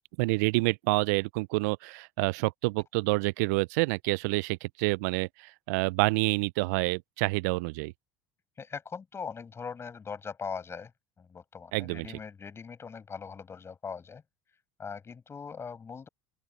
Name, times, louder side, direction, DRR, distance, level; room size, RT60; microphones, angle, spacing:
voice 1, 0.2-7.9 11.7-12.1, right 26 dB, 65° right, 0.8 m, -28 dB
voice 2, 8.6-10.9 11.2-14.2 14.8-16.1, left 6 dB, 25° left, 7.4 m, -40 dB
open air
figure-of-eight pair, 70°, 10 cm